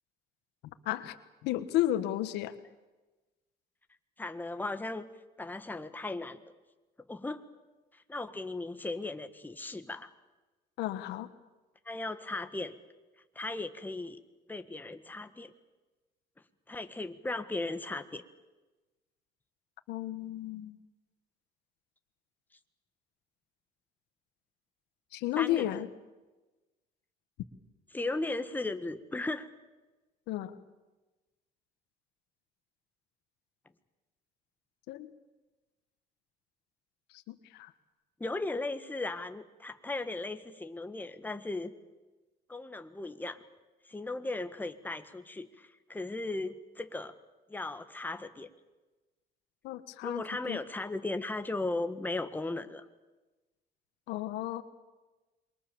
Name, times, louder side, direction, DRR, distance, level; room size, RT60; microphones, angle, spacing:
voice 1, 0.8-1.2 1.4-2.5 10.8-11.3 19.9-20.8 25.1-25.9 30.3-30.5 34.9-35.1 37.3-37.7 49.6-50.6 54.1-54.6, left 14 dB, 85° left, 12 dB, 1.5 m, -33 dB
voice 2, 4.2-5.1 5.4-6.4 7.1-7.4 7.9-10.1 11.8-12.8 13.3-14.2 14.5-15.5 16.7-18.2 25.4-25.8 27.9-29.5 38.2-41.7 42.5-43.4 43.9-47.2 47.5-48.5 50.0-52.9, left 2 dB, 10° left, 9 dB, 1.5 m, -36 dB
27.5 x 22.5 x 7.1 m, 1.2 s
cardioid pair, 110°, 17 cm